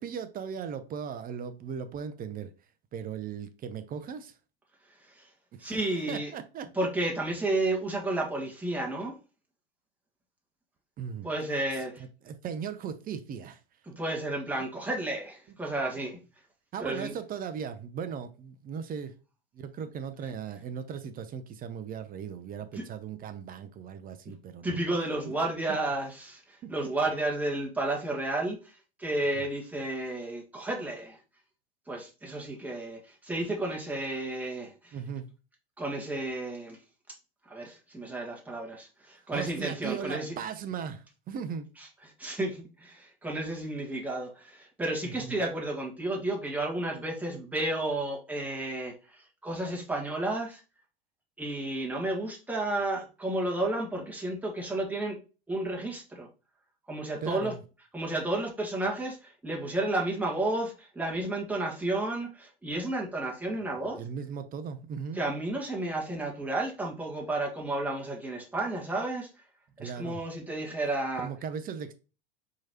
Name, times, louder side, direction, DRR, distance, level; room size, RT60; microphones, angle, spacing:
voice 1, 0.0-2.5 2.9-4.4 5.5-6.7 11.0-11.3 11.7-13.6 16.7-19.1 19.5-24.8 25.2-25.3 25.7-25.8 26.6-26.7 29.4-29.5 34.9-35.3 39.3-41.7 45.0-45.4 57.2-57.6 63.7-65.2 69.8-70.2 71.2-71.9, right 7 dB, 30° right, 0.7 m, -38 dB
voice 2, 5.6-6.3 6.7-9.2 11.2-12.0 13.9-16.2 16.8-17.1 22.7-22.8 24.3-24.4 24.6-31.2 31.9-34.9 35.8-36.8 37.5-40.3 42.2-50.6 51.4-55.2 55.5-56.3 56.9-57.5 57.9-64.0 65.1-69.3 69.8-71.3, right 2 dB, 5° right, 1.6 m, -32 dB
4.7 x 3.7 x 2.9 m
hypercardioid pair, 90°, 30 cm